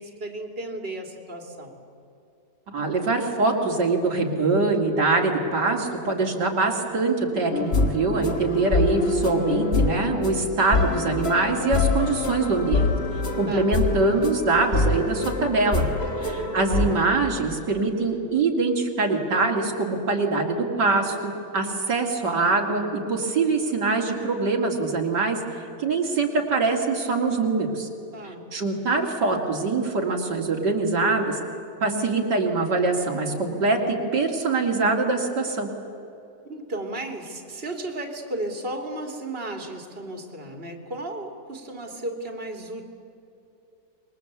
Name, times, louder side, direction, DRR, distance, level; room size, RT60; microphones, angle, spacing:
voice 1, 0.0-1.7 13.5-13.7 16.2-16.5 28.1-28.4 36.4-42.8, right 1 dB, 35° right, 3 dB, 3.0 m, -34 dB
voice 2, 2.7-12.9 13.4-15.8 16.2-25.4 25.8-27.9 28.5-31.4 31.8-35.7, right 3 dB, 80° right, 0 dB, 3.3 m, -23 dB
sound 1, 7.5-17.2, left 3 dB, 35° left, 1.8 m, -25 dB
27.0 x 22.5 x 8.2 m, 2.7 s
omnidirectional pair, 1.8 m